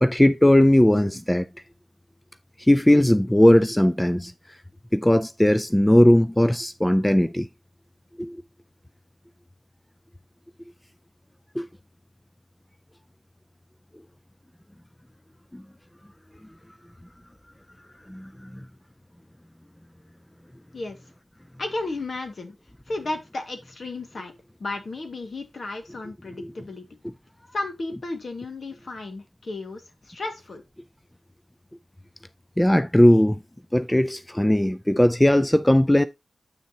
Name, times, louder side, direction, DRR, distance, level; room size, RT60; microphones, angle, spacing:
voice 1, 0.0-1.5 2.6-4.3 4.9-7.5 8.2-8.4 11.6-11.7 15.5-15.6 18.1-18.5 26.4-26.5 32.6-33.4 33.7-36.0, left 1 dB, 10° left, 0.4 m, -18 dB
voice 2, 21.6-22.6 22.9-24.3 24.6-26.9 27.5-30.6, left 2 dB, 60° left, 1.9 m, -33 dB
8.0 x 6.3 x 2.8 m
wide cardioid pair, 75°, 0 cm